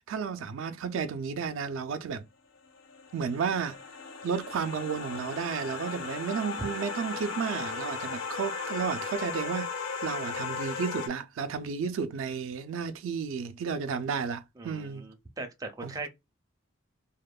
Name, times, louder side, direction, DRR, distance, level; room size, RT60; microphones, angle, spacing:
voice 1, 0.0-2.2 3.1-3.8 4.2-15.1 15.8-16.1, right 6 dB, 80° right, 0.3 m, -32 dB
sound 1, 2.6-11.1, left 4 dB, 70° left, 0.5 m, -36 dB
voice 2, 14.6-16.1, right 3 dB, 20° right, 0.5 m, -39 dB
2.8 x 2.1 x 2.2 m
head